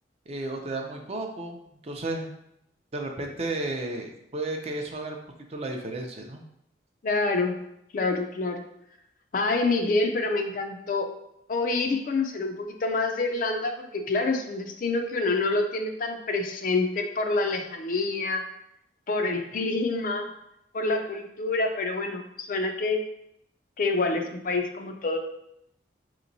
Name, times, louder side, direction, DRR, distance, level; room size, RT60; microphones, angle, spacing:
voice 1, 0.3-2.3 2.9-5.2 5.5-6.4, right 2 dB, 35° right, 3 dB, 0.5 m, -33 dB
voice 2, 7.0-7.6 7.9-8.6 9.3-11.1 11.5-18.4 19.1-20.3 20.7-23.0 23.8-25.2, left 3 dB, 45° left, 4 dB, 0.4 m, -27 dB
5.1 x 2.9 x 2.6 m, 0.80 s
head